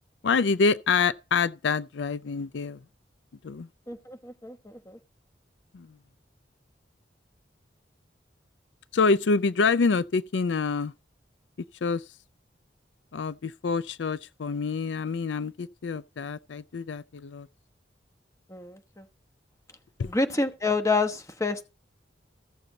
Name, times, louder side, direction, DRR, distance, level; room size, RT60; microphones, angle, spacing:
voice 1, 0.2-2.8 3.4-3.7 5.7-5.9 8.9-10.9 11.8-12.0 13.1-17.5 20.0-20.1, left 4 dB, 80° left, 0.5 m, -26 dB
voice 2, 3.9-5.0 18.5-19.1 20.0-21.7, left 3 dB, 15° left, 1.1 m, -28 dB
15.0 x 6.9 x 4.0 m
head